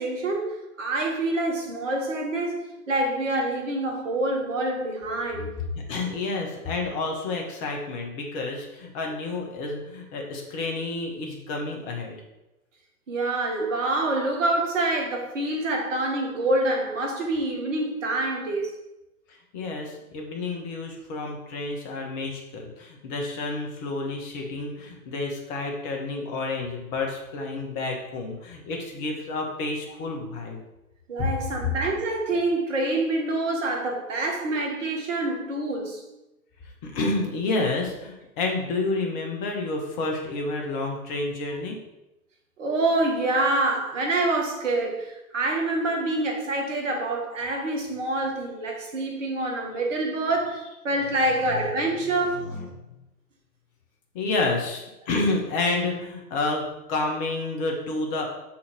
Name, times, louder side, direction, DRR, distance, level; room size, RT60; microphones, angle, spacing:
voice 1, 0.0-5.5 13.1-18.7 31.1-36.0 42.6-52.5, right 2 dB, 55° right, 2 dB, 2.1 m, -26 dB
voice 2, 5.8-12.2 19.3-30.6 36.8-41.8 51.5-51.7 52.2-52.7 54.1-58.3, left 3 dB, 35° left, 1 dB, 1.8 m, -30 dB
6.2 x 5.9 x 4.5 m, 0.93 s
figure-of-eight pair, 115°, 45 cm